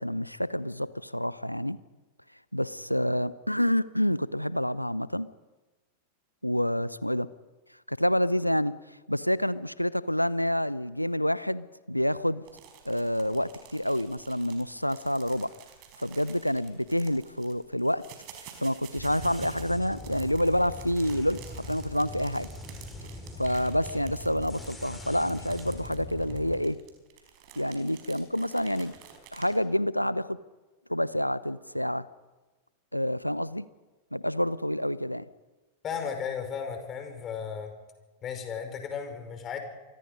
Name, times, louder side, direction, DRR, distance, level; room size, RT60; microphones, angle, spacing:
voice 1, 0.0-1.8 2.5-5.3 6.4-7.3 7.9-8.7 9.1-12.4 12.8-15.5 16.0-18.0 18.6-22.5 23.4-26.8 27.6-28.9 29.3-30.4 30.9-32.0 32.9-33.7 34.1-35.2, equal, 90° left, 17 dB, 0.8 m, -28 dB
sound 1, 12.4-29.6, right 9 dB, 45° right, 5.1 m, -51 dB
sound 2, 19.0-26.6, left 1 dB, 5° left, 5.2 m, -42 dB
voice 2, 35.8-37.7 38.2-39.6, left 7 dB, 30° left, 5 dB, 5.7 m, -35 dB
29.0 x 24.0 x 5.3 m, 1.2 s
figure-of-eight pair, 90°, 0 cm